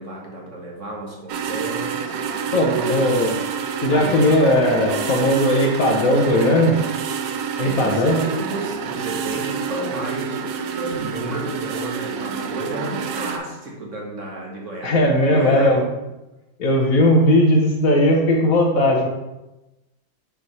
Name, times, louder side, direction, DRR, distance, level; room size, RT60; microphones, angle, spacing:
voice 1, 0.0-2.0 2.2-3.1 3.8-4.2 7.6-15.8 16.8-16.9, right 2 dB, 45° right, -2 dB, 1.1 m, -31 dB
Rusty Fan, 1.3-13.4, right 6 dB, 85° right, 0.8 m, -28 dB
voice 2, 2.5-3.3 3.8-6.8 7.6-8.2 14.8-15.8 16.6-19.1, left 1 dB, 65° left, 1 dB, 0.8 m, -17 dB
5.6 x 3.1 x 5.3 m, 1.0 s
omnidirectional pair, 2.3 m